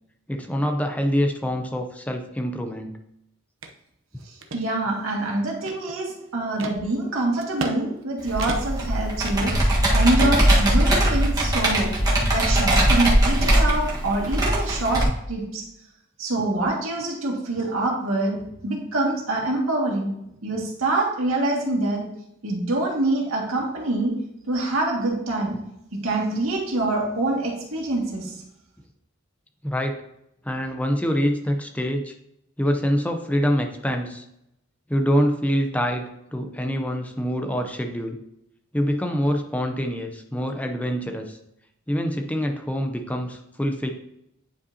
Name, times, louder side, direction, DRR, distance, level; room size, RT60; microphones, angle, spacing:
voice 1, 0.3-2.9 29.6-30.0 30.4-32.1 32.6-34.2 34.9-38.2 38.7-41.4 41.9-43.9, equal, 5° left, 4 dB, 0.5 m, -25 dB
sound 1, 3.6-3.7 4.2-4.6 5.2-6.1 6.6-6.8 7.4-7.8 8.0-8.1 8.4-8.9 9.3-9.8 10.2-10.6 11.0-11.8, right 3 dB, 70° right, 0.8 m, -35 dB
voice 2, 4.3-9.5 9.9-11.9 12.3-15.0 15.3-15.7 16.2-18.4 18.6-20.1 20.4-22.0 22.4-24.1 24.5-25.6 25.9-28.4, right 2 dB, 90° right, -1 dB, 2.0 m, -25 dB
Computer keyboard, 8.3-15.0, right 1 dB, 20° right, 1.4 m, -20 dB
9.5 x 5.4 x 2.8 m, 0.80 s
head